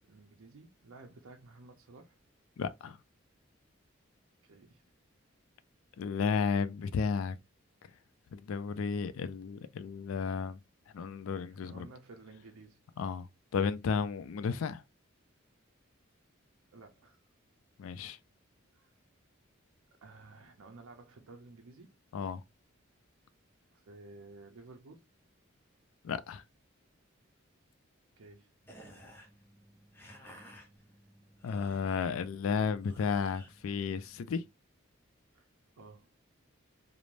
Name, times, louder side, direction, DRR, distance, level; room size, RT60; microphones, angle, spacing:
voice 1, 0.0-2.2 4.4-4.8 11.6-12.8 16.7-17.2 18.7-18.9 20.0-21.9 23.7-25.0 28.2-28.5 35.3-35.5 35.8-36.1, right 3 dB, 85° right, 0.6 m, -53 dB
voice 2, 2.6-3.0 6.0-7.4 8.3-10.6 10.9-11.9 13.0-13.3 13.5-14.8 17.8-18.2 22.1-22.4 26.0-26.4 31.4-34.4, left 5 dB, 75° left, 0.3 m, -33 dB
sound 1, 28.6-34.5, equal, 10° left, 0.5 m, -55 dB
3.1 x 2.0 x 2.5 m
head